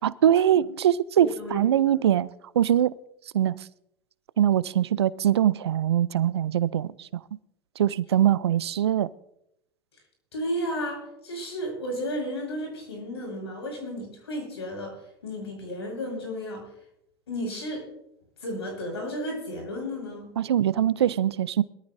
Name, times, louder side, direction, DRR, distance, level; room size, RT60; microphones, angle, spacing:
voice 1, 0.0-2.3 2.5-2.9 3.3-3.7 4.4-7.1 7.8-9.1 20.4-21.6, right 10 dB, 85° right, 19 dB, 0.6 m, -22 dB
voice 2, 1.2-1.6 10.3-15.0 15.2-16.7 17.3-17.8 18.4-20.3, equal, 90° left, 2 dB, 6.2 m, -33 dB
22.0 x 14.0 x 2.7 m, 0.79 s
hypercardioid pair, 95°, 13 cm